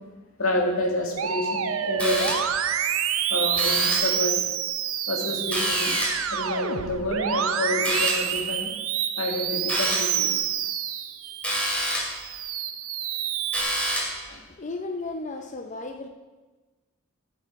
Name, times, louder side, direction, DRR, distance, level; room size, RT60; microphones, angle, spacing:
voice 1, 0.4-2.3 3.3-4.5 5.1-6.0 6.3-8.7 9.2-10.3 14.3-14.4, left 2 dB, 85° left, 1 dB, 2.1 m, -28 dB
Musical instrument, 1.2-11.6 12.0-13.6, right 9 dB, 75° right, 0.6 m, -27 dB
sound 1, 2.0-2.7 3.5-4.2 5.5-6.3 7.8-8.4 9.7-10.2 11.4-12.2 13.5-14.3, equal, 5° left, 2.3 m, -28 dB
voice 2, 14.6-16.1, left 3 dB, 35° left, 5 dB, 0.6 m, -34 dB
12.0 x 7.6 x 4.7 m, 1.2 s
head